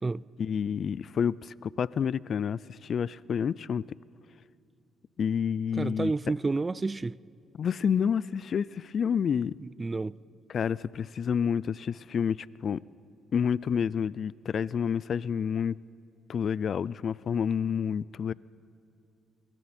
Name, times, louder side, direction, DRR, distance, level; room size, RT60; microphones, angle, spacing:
voice 1, 0.4-3.8 5.2-6.1 7.6-9.6 10.5-12.8 13.3-15.8 16.3-18.3, left 7 dB, 55° left, 0.4 m, -29 dB
voice 2, 5.7-7.2 9.6-10.1, right 3 dB, 25° right, 0.4 m, -30 dB
29.0 x 23.5 x 4.4 m
cardioid pair, 90°, 0 cm